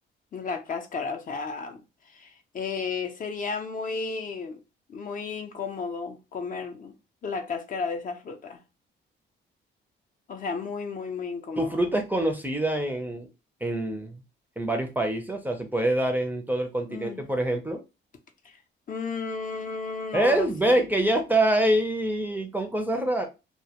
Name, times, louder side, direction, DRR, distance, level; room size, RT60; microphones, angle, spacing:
voice 1, 0.3-1.8 2.1-2.3 2.5-4.6 4.9-6.9 7.2-8.6 10.3-11.7 16.9-17.2 18.9-20.8, left 5 dB, 45° left, 0.5 m, -33 dB
voice 2, 11.6-13.3 13.6-14.2 14.6-17.8 20.1-23.3, right 1 dB, 10° right, 0.4 m, -25 dB
2.1 x 2.1 x 2.8 m
cardioid pair, 90°, 20 cm